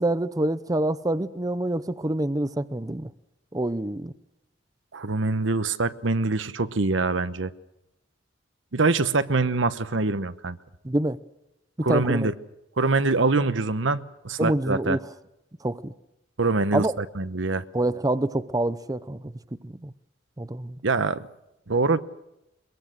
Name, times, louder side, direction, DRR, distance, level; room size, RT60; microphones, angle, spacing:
voice 1, 0.0-3.1 3.5-4.1 10.8-11.2 11.8-12.3 14.4-15.0 15.6-15.9 16.7-17.0 17.7-19.3 19.6-19.9 20.4-20.8, right 1 dB, 20° right, 0.7 m, -26 dB
voice 2, 4.9-7.5 8.7-10.6 11.8-12.3 12.8-15.0 16.4-17.6 20.8-21.3 21.7-22.0, right 3 dB, 75° right, 1.0 m, -24 dB
23.0 x 22.5 x 6.5 m
head